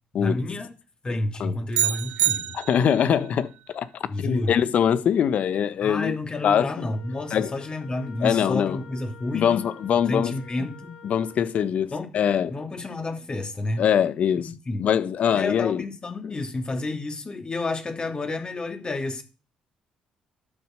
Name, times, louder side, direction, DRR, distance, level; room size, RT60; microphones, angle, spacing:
voice 1, 0.2-0.7 1.0-2.6 4.1-4.5 5.8-9.6 10.1-10.9 11.9-12.1 12.5-13.8 14.4-14.9 15.3-19.2, left 2 dB, 35° left, 3.1 m, -30 dB
sound 1, 1.7-3.1, right 12 dB, 75° right, 0.6 m, -26 dB
voice 2, 2.5-3.9 4.2-6.1 6.4-6.8 7.3-7.5 8.2-8.8 9.3-10.3 11.0-12.5 13.8-14.5 14.8-15.8 16.2-16.3, left 8 dB, 65° left, 1.2 m, -23 dB
Wind instrument woodwind instrument, 6.6-11.5, left 4 dB, 90° left, 2.5 m, -48 dB
12.0 x 7.4 x 6.6 m
supercardioid pair, 55°, 3 cm